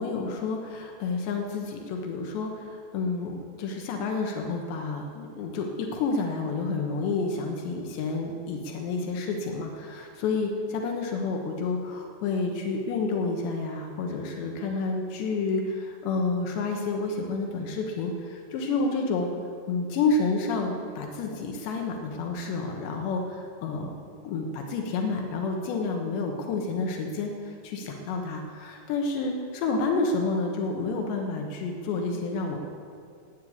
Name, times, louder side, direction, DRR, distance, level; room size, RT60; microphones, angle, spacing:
voice 1, 0.0-19.3 19.7-23.9 24.3-32.6, left 3 dB, 80° left, 2 dB, 3.5 m, -29 dB
15.0 x 9.8 x 8.6 m, 2.2 s
omnidirectional pair, 5.0 m